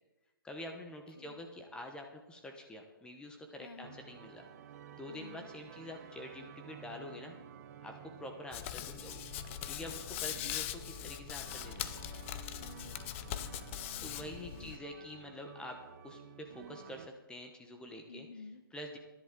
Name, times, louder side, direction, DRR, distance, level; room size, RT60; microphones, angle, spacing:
voice 1, 0.4-4.5 5.0-7.3 7.8-9.2 9.6-11.9 14.0-15.8 16.0-18.3 18.7-19.0, left 1 dB, 5° left, 3 dB, 1.1 m, -47 dB
voice 2, 3.6-4.0 5.1-5.5 10.2-10.6 12.6-13.2 13.8-14.7 18.1-18.6, left 4 dB, 75° left, 11 dB, 1.2 m, -52 dB
sound 1, 3.8-17.1, right 9 dB, 40° right, 0.7 m, -53 dB
Hands, 8.5-14.8, left 12 dB, 30° left, 0.7 m, -41 dB
20.0 x 11.0 x 3.8 m, 1.1 s
hypercardioid pair, 140°, 12 cm